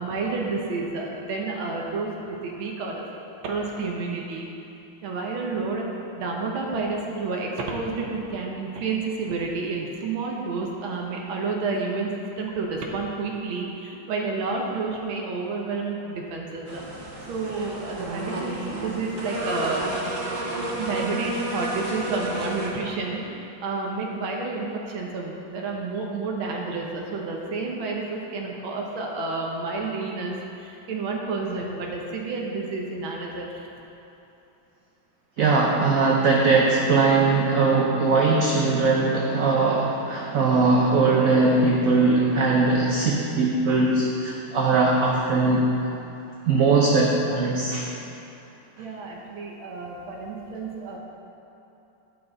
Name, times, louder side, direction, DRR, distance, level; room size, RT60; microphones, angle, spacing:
voice 1, 0.0-3.0 3.4-4.5 5.0-5.9 6.2-12.1 12.4-16.8 17.3-19.8 20.8-33.7 48.8-51.0, right 3 dB, 90° right, -1 dB, 1.7 m, -30 dB
sound 1, 16.7-22.7, right 1 dB, 45° right, 1.4 m, -32 dB
voice 2, 35.4-45.7 46.5-47.9, right 3 dB, 65° right, -2 dB, 0.8 m, -20 dB
11.5 x 6.2 x 3.9 m, 2.9 s
omnidirectional pair, 2.1 m